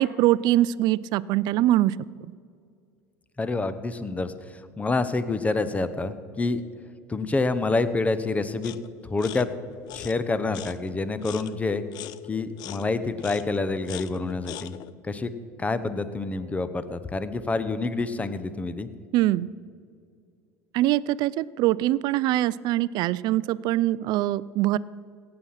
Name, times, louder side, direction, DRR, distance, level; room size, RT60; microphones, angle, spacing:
voice 1, 0.0-2.0 19.1-19.5 20.7-24.8, right 15 dB, 60° right, 20 dB, 0.4 m, -23 dB
voice 2, 3.4-6.6 7.1-8.8 9.1-9.5 9.9-11.8 12.3-14.7 15.0-15.3 15.6-18.9, left 3 dB, 15° left, 13 dB, 0.9 m, -27 dB
sound 1, 8.6-8.9 9.2-14.9, left 13 dB, 60° left, 0.5 m, -41 dB
17.5 x 7.7 x 5.8 m, 2.3 s
supercardioid pair, 85°, 8 cm